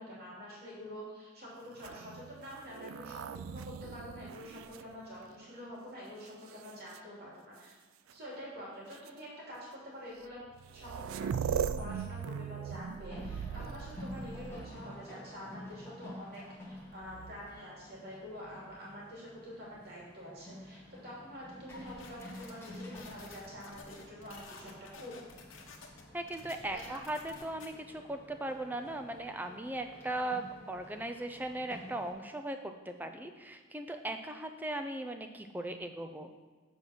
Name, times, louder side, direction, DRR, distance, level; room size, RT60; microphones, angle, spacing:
voice 1, 0.0-7.8 8.1-10.4 10.7-25.2 26.7-27.0, equal, 50° right, -6 dB, 2.7 m, -47 dB
sound 1, 1.7-5.6 6.3-7.0 8.1-8.2 8.9-9.1 10.2-10.3 10.5-15.0 16.9-17.6, right 7 dB, 85° right, 0.3 m, -40 dB
sound 2, 13.1-32.1, left 1 dB, 10° left, 1.2 m, -50 dB
sound 3, 21.7-27.7, left 4 dB, 80° left, 1.1 m, -52 dB
voice 2, 26.1-36.3, right 1 dB, 10° right, 6 dB, 0.4 m, -38 dB
7.8 x 4.5 x 5.8 m, 1.4 s
head